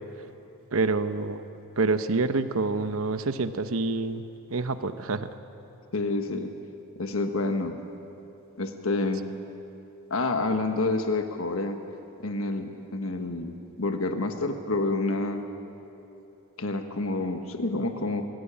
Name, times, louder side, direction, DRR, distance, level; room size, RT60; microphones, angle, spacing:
voice 1, 0.7-1.4 1.8-4.2 4.5-5.3, right 3 dB, 75° right, 11 dB, 0.8 m, -27 dB
voice 2, 5.9-6.5 7.0-7.8 8.6-9.3 10.1-11.8 12.2-15.4 16.6-18.2, left 2 dB, 75° left, 6 dB, 1.3 m, -28 dB
23.0 x 14.0 x 8.7 m, 3.0 s
head